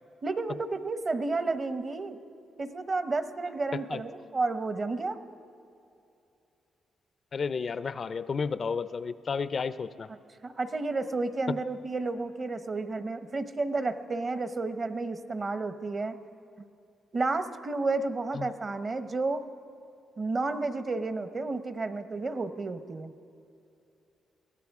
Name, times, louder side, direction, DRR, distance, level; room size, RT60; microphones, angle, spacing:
voice 1, 0.2-2.2 2.6-5.2 10.4-16.2 17.1-19.4 20.2-23.1, right 3 dB, 40° right, 10 dB, 0.8 m, -31 dB
voice 2, 7.3-10.1 11.5-11.6 18.3-18.5, left 5 dB, 50° left, 15 dB, 0.4 m, -32 dB
22.5 x 16.5 x 3.6 m, 2.6 s
cardioid pair, 85°, 0 cm